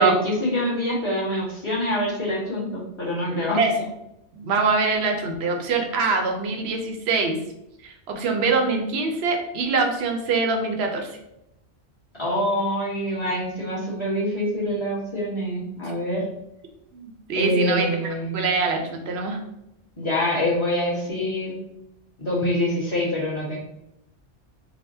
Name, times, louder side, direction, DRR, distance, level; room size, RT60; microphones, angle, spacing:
voice 1, 0.0-3.6 12.2-16.3 17.4-18.3 20.0-21.6 22.2-23.6, left 1 dB, 25° left, -7 dB, 1.2 m, -25 dB
voice 2, 4.3-7.4 7.8-11.1 16.9-17.9 18.3-19.4, right 4 dB, 70° right, 3 dB, 0.8 m, -24 dB
4.1 x 2.1 x 2.6 m, 0.85 s
omnidirectional pair, 1.2 m